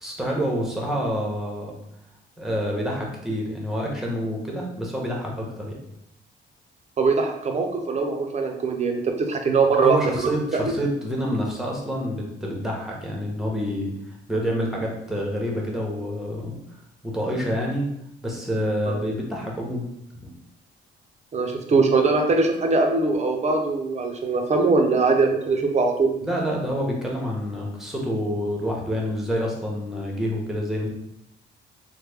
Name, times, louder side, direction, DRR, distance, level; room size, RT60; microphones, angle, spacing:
voice 1, 0.0-1.7 2.4-5.7 9.8-16.6 17.0-17.9 18.2-19.9 26.2-30.9, equal, ahead, -2 dB, 0.9 m, -27 dB
voice 2, 7.0-10.7 18.9-19.0 21.3-26.1, right 4 dB, 35° right, 3 dB, 0.6 m, -22 dB
3.0 x 2.1 x 3.4 m, 0.78 s
cardioid pair, 90°, 20 cm